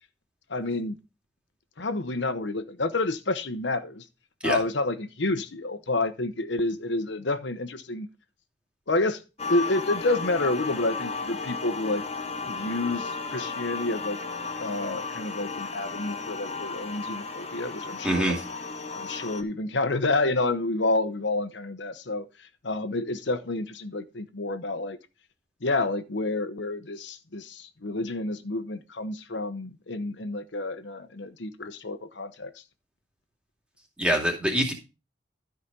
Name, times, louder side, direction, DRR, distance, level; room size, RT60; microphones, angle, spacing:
voice 1, 0.5-1.0 1.8-4.0 4.4-8.1 8.9-9.2 9.5-12.0 12.5-14.2 14.6-18.4 18.9-25.0 25.6-32.6, left 2 dB, 80° left, 1.0 m, -29 dB
sound 1, 9.4-19.4, left 4 dB, 35° left, 1.1 m, -34 dB
voice 2, 18.0-18.4 34.0-34.7, right 1 dB, 5° right, 2.5 m, -24 dB
13.0 x 5.1 x 5.4 m
head